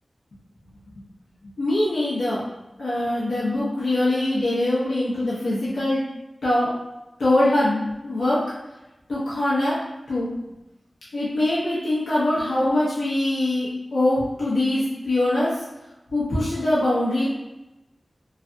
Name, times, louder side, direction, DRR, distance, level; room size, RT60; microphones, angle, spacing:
voice 1, 1.6-2.4 2.8-6.0 6.4-6.7 7.2-8.4 9.1-9.8 10.1-10.3 11.1-15.5 16.1-17.2, left 1 dB, 90° left, -9 dB, 0.9 m, -23 dB
3.2 x 2.3 x 2.6 m, 0.96 s
cardioid pair, 45°, 0 cm